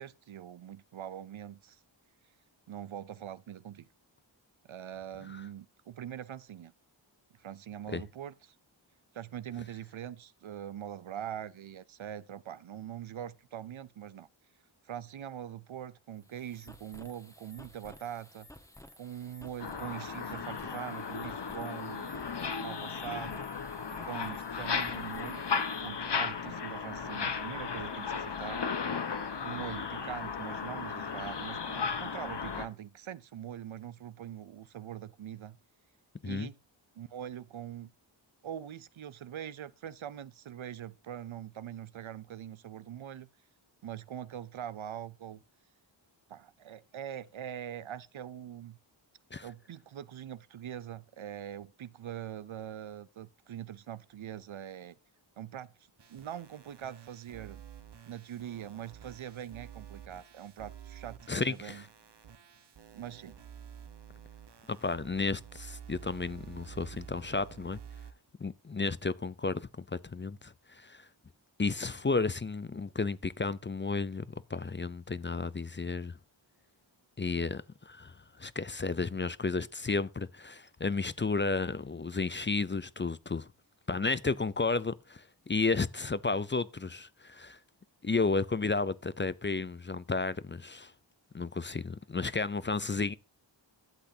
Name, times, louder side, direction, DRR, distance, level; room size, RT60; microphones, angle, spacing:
voice 1, 0.0-1.8 2.7-3.9 4.7-6.7 7.4-8.6 9.1-14.3 14.8-18.5 19.0-22.1 22.6-23.4 23.9-28.6 29.4-35.6 36.2-36.6 37.0-37.9 38.4-43.3 43.8-45.4 46.3-48.8 49.4-55.0 55.4-55.7 56.1-57.6 58.1-61.8 62.9-63.4, right 10 dB, 85° right, 0.6 m, -43 dB
sound 1, 16.1-25.9, left 1 dB, 5° left, 1.2 m, -54 dB
sound 2, 19.6-32.7, left 5 dB, 60° left, 1.1 m, -35 dB
sound 3, 56.0-68.1, right 8 dB, 60° right, 0.9 m, -50 dB
voice 2, 61.3-61.8 64.7-67.8 68.4-71.1 71.6-76.2 77.2-83.5 83.9-87.6 88.0-90.9 91.3-93.1, left 4 dB, 25° left, 0.4 m, -32 dB
12.0 x 8.1 x 2.7 m
wide cardioid pair, 80°, 46 cm